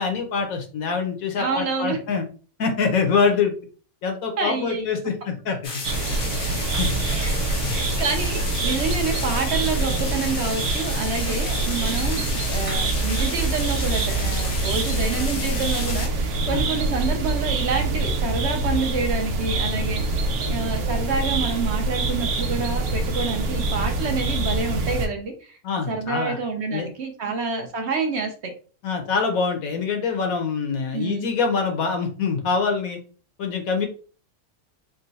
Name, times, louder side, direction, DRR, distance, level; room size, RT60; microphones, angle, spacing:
voice 1, 0.0-2.2 2.6-3.5 4.0-5.8 6.7-6.9 7.6-7.8 16.5-16.6 20.4-20.6 25.6-26.4 26.7-26.9 27.2-27.3 28.8-33.0 33.4-33.9, left 5 dB, 70° left, 5 dB, 1.2 m, -25 dB
voice 2, 1.4-2.0 4.4-4.9 7.1-7.4 7.7-25.5 25.9-28.5 30.9-31.3, right 4 dB, 55° right, 4 dB, 0.8 m, -28 dB
sound 1, 5.6-16.1, left 4 dB, 45° left, 0.8 m, -32 dB
sound 2, 5.8-25.1, right 2 dB, 90° right, 1.2 m, -25 dB
sound 3, 12.7-17.4, right 6 dB, 30° right, 0.7 m, -34 dB
3.8 x 2.1 x 4.0 m, 0.38 s
omnidirectional pair, 1.6 m